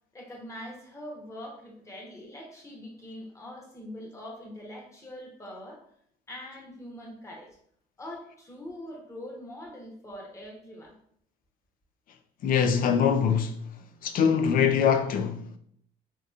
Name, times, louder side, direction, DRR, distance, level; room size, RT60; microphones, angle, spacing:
voice 1, 0.1-5.8 6.3-7.5 8.0-10.9, left 1 dB, 15° left, 1.0 m, -43 dB
voice 2, 12.4-13.6 14.0-15.5, left 7 dB, 55° left, 0.4 m, -23 dB
3.5 x 2.9 x 2.3 m
cardioid pair, 110°, 17 cm